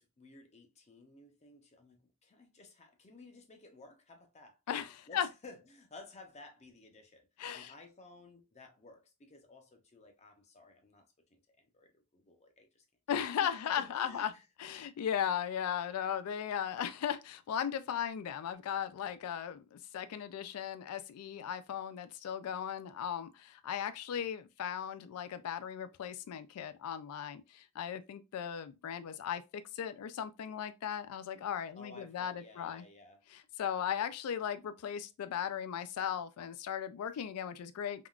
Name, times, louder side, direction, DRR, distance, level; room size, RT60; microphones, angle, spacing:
voice 1, 0.0-4.6 5.1-7.3 7.5-12.8 13.4-13.5 13.8-14.5 31.7-33.2, left 2 dB, 30° left, 0.6 m, -55 dB
voice 2, 4.7-5.3 7.4-7.7 13.1-14.3 14.6-32.8 33.3-38.1, left 9 dB, 80° left, 0.3 m, -37 dB
3.5 x 2.3 x 2.3 m
head